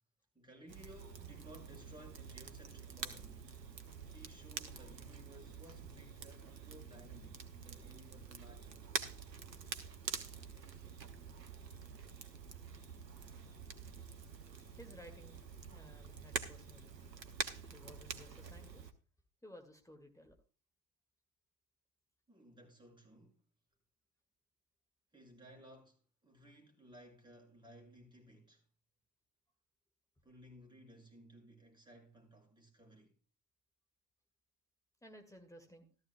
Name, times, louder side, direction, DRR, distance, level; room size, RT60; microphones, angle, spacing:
voice 1, 0.3-3.5 4.0-8.9 22.3-23.4 25.1-28.6 30.2-33.2, equal, 10° right, 6.1 m, -58 dB
Crackle, 0.7-18.9, right 5 dB, 85° right, 0.9 m, -47 dB
voice 2, 14.8-17.1 17.7-18.9 19.4-20.4 35.0-35.9, equal, 5° left, 2.1 m, -57 dB
14.5 x 13.5 x 2.2 m
figure-of-eight pair, 65°, 49 cm